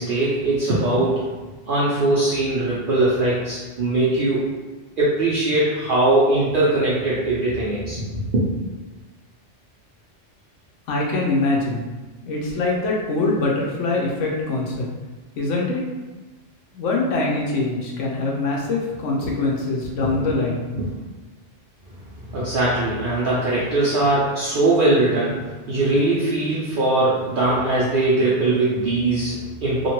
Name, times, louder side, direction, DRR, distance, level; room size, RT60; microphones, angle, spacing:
voice 1, 0.0-1.4 1.7-4.5 5.0-8.4 19.2-19.3 20.0-20.3 20.7-20.9 22.3-29.9, right 2 dB, 55° right, -8 dB, 0.7 m, -21 dB
voice 2, 10.9-11.9 12.2-14.9 15.4-15.8 16.7-20.6, left 2 dB, 90° left, -2 dB, 1.0 m, -23 dB
2.9 x 2.5 x 2.9 m, 1.2 s
omnidirectional pair, 1.3 m